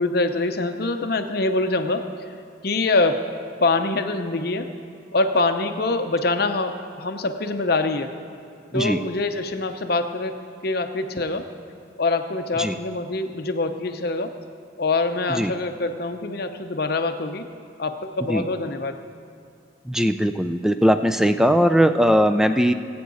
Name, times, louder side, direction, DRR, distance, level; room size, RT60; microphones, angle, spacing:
voice 1, 0.0-2.1 2.6-3.2 3.6-4.7 5.1-8.1 8.7-10.4 10.6-11.5 12.0-14.3 14.8-17.5 17.8-19.0, left 3 dB, 55° left, 7 dB, 0.7 m, -24 dB
voice 2, 19.9-22.7, equal, 5° right, 9 dB, 0.4 m, -19 dB
20.5 x 8.6 x 4.0 m, 2.4 s
head